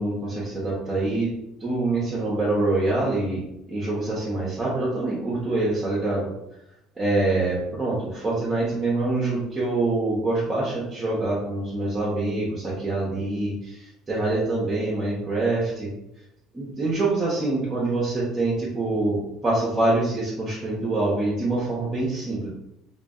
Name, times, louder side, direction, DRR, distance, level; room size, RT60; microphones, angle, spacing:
voice 1, 0.0-1.3 1.6-6.3 7.0-15.9 16.5-22.5, right 2 dB, 25° right, -6 dB, 0.8 m, -25 dB
2.5 x 2.3 x 2.3 m, 0.84 s
hypercardioid pair, 70°, 0 cm